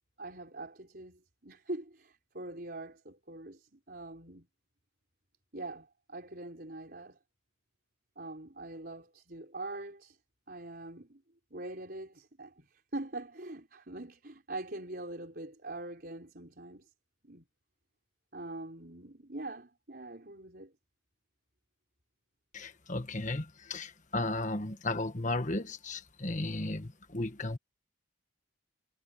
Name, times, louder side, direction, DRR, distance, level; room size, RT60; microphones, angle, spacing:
voice 1, 0.2-4.5 5.5-7.2 8.2-10.2 10.5-11.2 11.5-16.9 17.2-17.4 18.3-20.7, right 2 dB, 45° right, 4.8 m, -43 dB
voice 2, 22.5-27.6, left 2 dB, 35° left, 1.5 m, -35 dB
head